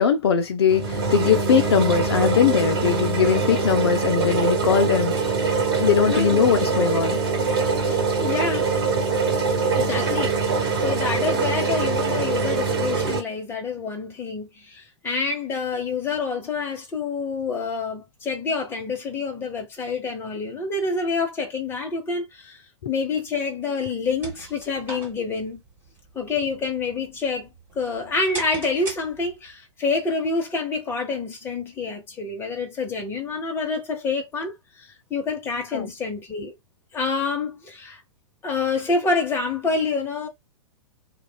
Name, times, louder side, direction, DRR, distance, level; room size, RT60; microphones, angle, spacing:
voice 1, 0.0-5.1 5.8-7.2 35.7-35.9, left 7 dB, 55° left, 0.5 m, -20 dB
sound 1, 0.7-13.2, right 4 dB, 55° right, 1.0 m, -23 dB
voice 2, 6.1-6.4 8.2-8.7 9.8-22.6 22.9-25.6 26.1-27.5 27.7-36.5 36.9-38.0 38.4-40.3, left 4 dB, 15° left, 0.8 m, -27 dB
sound 2, 23.8-29.6, right 3 dB, 15° right, 1.5 m, -41 dB
2.9 x 2.2 x 2.2 m
figure-of-eight pair, 105°, 16 cm